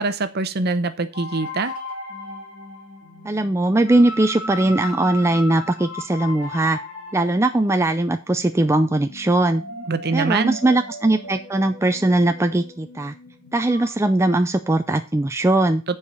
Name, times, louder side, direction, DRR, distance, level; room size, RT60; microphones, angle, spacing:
voice 1, 0.0-1.7 9.8-10.6, right 3 dB, 50° right, 11 dB, 0.8 m, -24 dB
sound 1, 1.1-13.9, left 2 dB, 60° left, 3.6 m, -37 dB
voice 2, 3.2-6.8 7.1-9.6 10.1-13.1 13.5-15.8, right 2 dB, 15° right, 7 dB, 0.4 m, -20 dB
8.3 x 4.8 x 6.7 m, 0.33 s
head